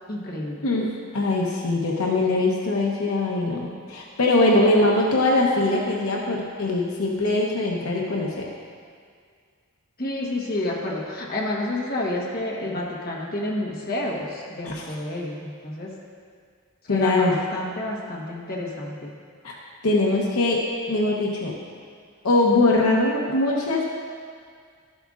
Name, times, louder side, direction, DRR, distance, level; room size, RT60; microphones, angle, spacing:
voice 1, 0.1-0.6 10.0-15.9 16.9-19.1, left 1 dB, 45° left, -3 dB, 1.3 m, -29 dB
voice 2, 0.6-8.5 14.6-14.8 16.9-17.4 19.4-19.5 19.8-21.5 22.2-23.8, left 2 dB, 80° left, -2 dB, 0.9 m, -22 dB
12.5 x 7.8 x 2.4 m, 2.1 s
head